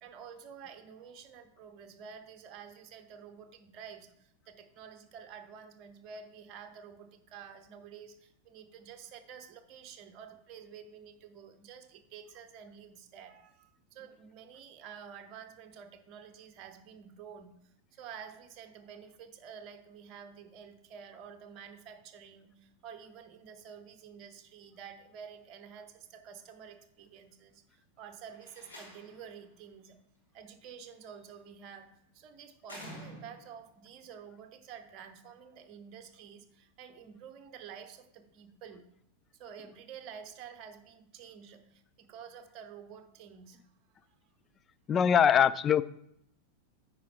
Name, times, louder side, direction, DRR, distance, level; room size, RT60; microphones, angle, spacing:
voice 1, 0.0-30.0 30.3-38.8 39.4-43.6, right 7 dB, 40° right, 7 dB, 0.9 m, -50 dB
Slam, 28.3-29.3 30.9-31.3 32.6-33.6, equal, 70° left, 3.1 m, -48 dB
voice 2, 44.9-45.8, left 8 dB, 25° left, 16 dB, 0.3 m, -22 dB
9.4 x 5.0 x 4.2 m, 0.74 s
figure-of-eight pair, 90°, 0 cm